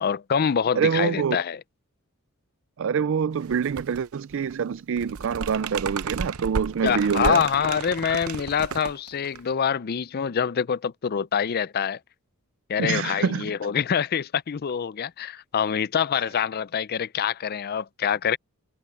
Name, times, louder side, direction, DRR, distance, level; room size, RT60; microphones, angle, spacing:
voice 1, 0.0-1.6 6.8-12.0 12.7-18.4, left 7 dB, 45° left, 0.4 m, -25 dB
voice 2, 0.8-1.4 2.8-7.4 8.1-8.2 12.8-13.5, right 6 dB, 60° right, 0.4 m, -25 dB
sound 1, 3.4-4.0 4.3-9.5, right 5 dB, 80° right, 0.7 m, -33 dB
head